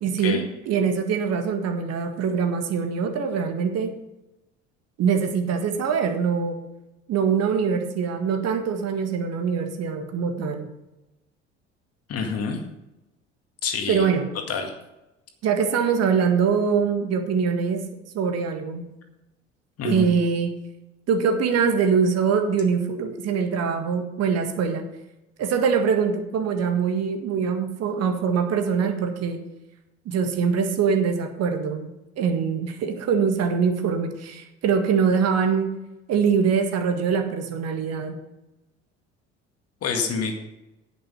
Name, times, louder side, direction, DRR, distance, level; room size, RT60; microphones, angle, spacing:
voice 1, 0.0-4.0 5.0-6.6 7.1-10.7 13.9-14.3 15.4-17.8 18.1-18.9 19.8-20.5 21.1-24.9 25.4-29.4 30.1-35.7 36.1-38.2, right 6 dB, 45° right, 5 dB, 1.8 m, -23 dB
voice 2, 12.1-12.6 13.6-14.1 14.5-14.7 19.8-20.1 39.8-40.3, left 5 dB, 45° left, 4 dB, 2.1 m, -27 dB
10.0 x 9.2 x 5.3 m, 0.95 s
figure-of-eight pair, 60°, 35 cm